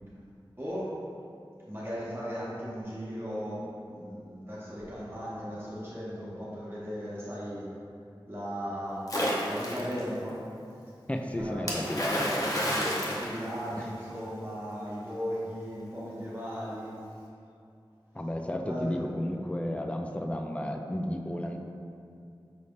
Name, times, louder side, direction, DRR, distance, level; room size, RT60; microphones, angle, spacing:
voice 1, 0.6-0.9 1.7-7.7 8.3-10.4 11.4-17.0 18.6-18.8, equal, 25° right, -8 dB, 0.8 m, -37 dB
Splash splatter, 9.1-10.0 11.7-14.1, equal, 40° left, 0.7 m, -30 dB
voice 2, 11.1-13.1 13.7-13.9 18.1-21.6, left 1 dB, 15° left, 3 dB, 0.3 m, -33 dB
5.2 x 3.2 x 2.5 m, 2.5 s
wide cardioid pair, 50°, 9 cm